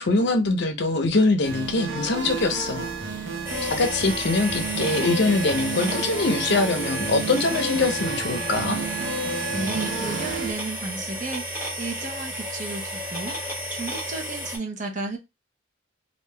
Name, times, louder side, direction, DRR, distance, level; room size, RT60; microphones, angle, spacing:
voice 1, 0.0-2.9 3.6-8.8, left 3 dB, 55° left, 0.6 m, -23 dB
sound 1, 1.4-10.5, right 3 dB, 60° right, 0.9 m, -31 dB
sound 2, 3.4-14.6, equal, 10° right, 1.4 m, -33 dB
voice 2, 9.5-15.2, right 3 dB, 40° right, 0.9 m, -33 dB
3.4 x 2.6 x 3.2 m
head